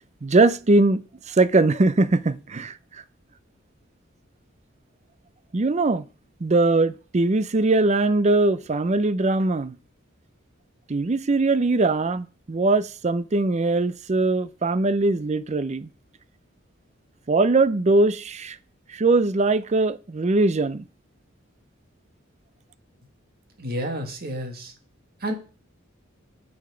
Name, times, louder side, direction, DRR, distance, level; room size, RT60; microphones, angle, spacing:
voice 1, 0.2-1.0 1.3-2.7 5.5-6.0 6.4-9.8 10.9-15.9 17.3-18.6 18.9-20.8, right 2 dB, 35° right, 0.5 m, -21 dB
voice 2, 23.6-24.7 25.2-25.3, equal, 50° right, 1.9 m, -30 dB
8.7 x 5.8 x 5.0 m
head